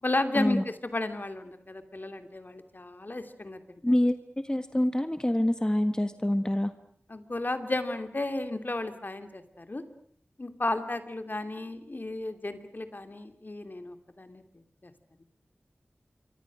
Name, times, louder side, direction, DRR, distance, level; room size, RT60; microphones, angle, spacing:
voice 1, 0.0-3.6 7.1-9.8 10.4-14.4 14.8-14.9, left 2 dB, 50° left, 9 dB, 2.8 m, -33 dB
voice 2, 3.8-4.2 4.4-6.7, left 1 dB, 20° left, 9 dB, 1.5 m, -26 dB
26.5 x 24.5 x 6.3 m, 0.63 s
wide cardioid pair, 45°, 4 cm